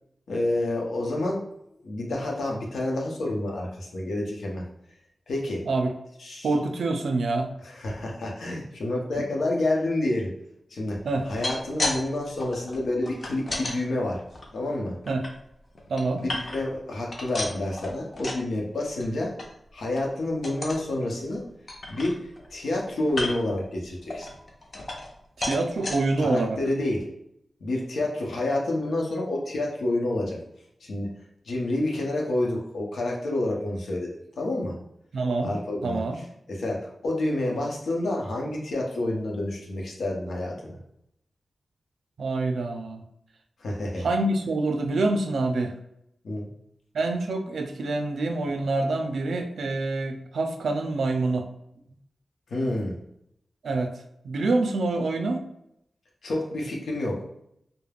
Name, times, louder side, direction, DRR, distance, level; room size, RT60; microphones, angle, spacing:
voice 1, 0.3-1.4 1.8-4.6 5.3-5.6 6.2-6.5 7.6-10.3 10.7-11.0 11.3-14.2 14.5-15.0 16.2-19.3 19.7-21.4 21.9-24.3 26.2-27.0 27.6-30.4 30.8-31.1 31.5-34.1 34.4-34.8 35.4-36.0 36.5-40.8 43.6-44.1 46.2-46.5 52.5-53.0 56.2-57.2, left 1 dB, 90° left, -1 dB, 0.7 m, -28 dB
voice 2, 6.4-7.5 9.2-9.3 11.0-11.3 15.1-15.3 15.9-16.2 25.4-26.6 35.1-35.5 35.8-36.2 42.2-43.0 44.0-45.8 46.9-51.5 53.6-53.9 54.2-55.5, right 2 dB, 85° right, 6 dB, 0.4 m, -26 dB
sound 1, 11.1-12.0 12.3-13.8 14.3-15.3 15.7-16.8 17.1-18.5 18.8-19.1 19.4-19.5 19.9-20.1 20.4-20.8 21.3-21.4 21.7-22.5 23.1-23.6 24.1-25.2 25.4-26.0 26.6-26.7 27.0-27.1, left 2 dB, 35° left, 0.4 m, -33 dB
2.3 x 2.1 x 3.3 m, 0.76 s
wide cardioid pair, 170°, 0 cm